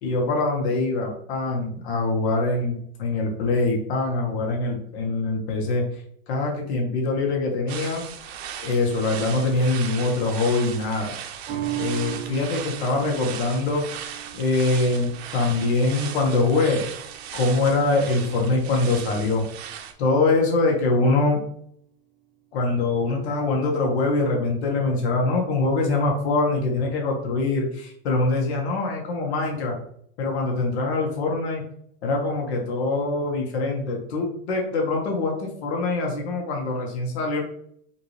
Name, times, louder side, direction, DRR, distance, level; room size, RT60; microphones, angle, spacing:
voice 1, 0.0-5.9 6.3-8.0 8.6-11.1 11.8-13.9 14.3-16.8 17.3-19.4 20.0-21.4 22.5-29.8 30.2-31.6 32.0-37.4, left 3 dB, 85° left, 0 dB, 1.4 m, -23 dB
sound 1, 7.7-19.9, right 9 dB, 75° right, 0.8 m, -37 dB
sound 2, 11.5-18.1 18.6-18.7, right 12 dB, 20° right, 0.3 m, -37 dB
5.8 x 2.7 x 3.2 m, 0.67 s
supercardioid pair, 180°, 32 cm